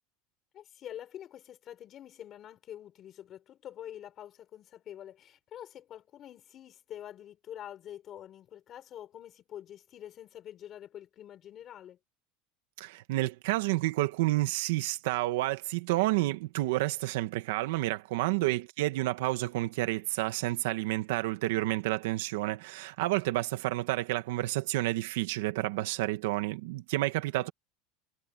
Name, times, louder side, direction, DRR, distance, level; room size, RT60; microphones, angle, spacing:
voice 1, 0.5-12.0 18.3-18.6 27.4-27.5, left 11 dB, 25° left, 6.0 m, -46 dB
voice 2, 12.8-27.5, right 18 dB, 75° right, 1.9 m, -30 dB
cardioid pair, 180°, 0 cm